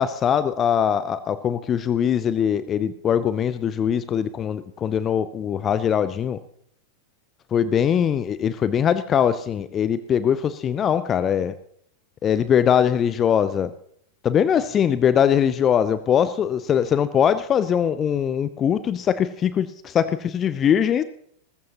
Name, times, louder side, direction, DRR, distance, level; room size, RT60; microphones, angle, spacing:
voice 1, 0.0-6.4 7.5-11.5 12.2-13.7 14.2-21.0, left 8 dB, 25° left, 14 dB, 0.7 m, -21 dB
20.0 x 14.5 x 3.0 m, 0.68 s
figure-of-eight pair, 90°, 0 cm